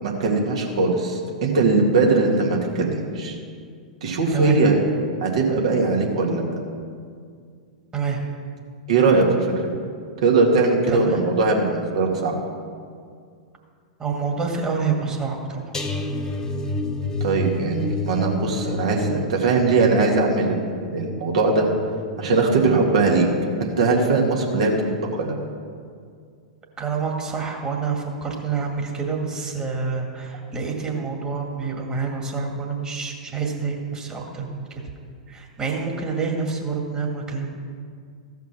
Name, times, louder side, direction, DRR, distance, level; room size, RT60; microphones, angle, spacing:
voice 1, 0.0-3.4 4.0-4.8 5.2-6.4 8.9-9.7 10.2-12.4 17.2-21.7 22.2-23.3 23.6-24.8 25.1-25.3, right 3 dB, 60° right, 0 dB, 2.0 m, -20 dB
voice 2, 7.9-8.2 10.9-11.2 14.0-15.6 26.8-34.9 35.3-37.5, right 5 dB, 20° right, 1 dB, 2.0 m, -27 dB
sound 1, 15.7-22.8 23.2-23.5 23.8-23.9, left 1 dB, 15° left, 1.1 m, -30 dB
15.0 x 5.8 x 6.1 m, 2.2 s
figure-of-eight pair, 100°, 4 cm